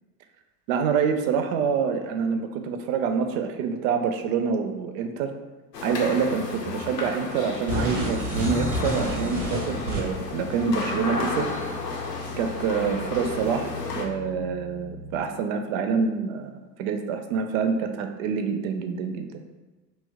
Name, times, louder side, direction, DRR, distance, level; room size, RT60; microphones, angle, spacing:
voice 1, 0.7-5.3 5.8-11.5 12.4-13.7 14.0-19.4, right 6 dB, 60° right, 6 dB, 0.5 m, -26 dB
sound 1, 5.7-14.1, left 3 dB, 90° left, 0.6 m, -33 dB
sound 2, 7.7-10.3, equal, 80° right, 0.9 m, -29 dB
sound 3, 7.8-15.3, left 6 dB, 35° left, 0.7 m, -40 dB
2.9 x 2.1 x 3.4 m, 1.2 s
figure-of-eight pair, 70°, 48 cm